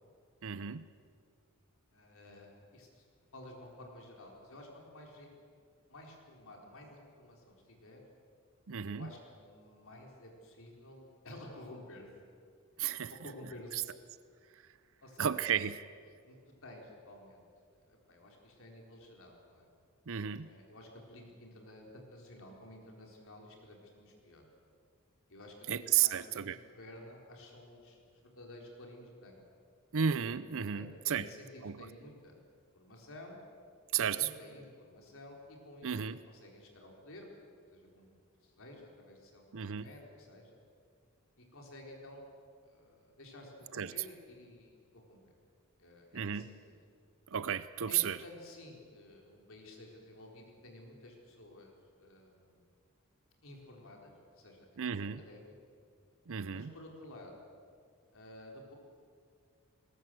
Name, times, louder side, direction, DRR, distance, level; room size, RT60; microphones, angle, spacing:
voice 1, 0.4-0.8 8.7-9.1 12.8-13.1 13.7-13.8 15.2-15.8 20.1-20.5 25.7-26.6 29.9-31.3 31.6-31.8 33.9-34.3 35.8-36.2 39.5-39.9 43.8-43.9 46.1-46.5 47.3-48.2 54.8-55.2 56.3-56.7, right 8 dB, 65° right, 15 dB, 0.7 m, -33 dB
voice 2, 1.9-3.0 3.3-5.3 5.9-8.0 8.9-12.1 12.8-13.8 15.0-15.3 16.2-17.4 17.8-19.7 20.4-24.4 25.3-29.4 30.7-32.4 32.7-33.4 34.0-36.0 36.3-38.1 38.4-40.6 41.4-42.3 42.6-45.3 45.8-46.8 47.9-52.6 53.4-55.5 56.5-57.5 58.1-58.7, left 1 dB, 65° left, 0 dB, 4.1 m, -52 dB
21.5 x 20.0 x 7.8 m, 2.2 s
head